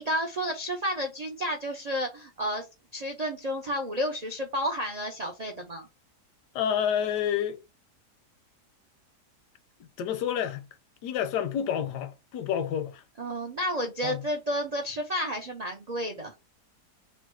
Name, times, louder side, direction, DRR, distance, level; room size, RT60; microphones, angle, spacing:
voice 1, 0.0-2.7 2.9-5.9 13.2-16.3, equal, 85° right, 0.3 m, -31 dB
voice 2, 6.5-7.6 10.0-10.6 11.0-13.0 14.0-14.2, left 9 dB, 85° left, 1.2 m, -29 dB
3.8 x 2.1 x 4.5 m
omnidirectional pair, 1.8 m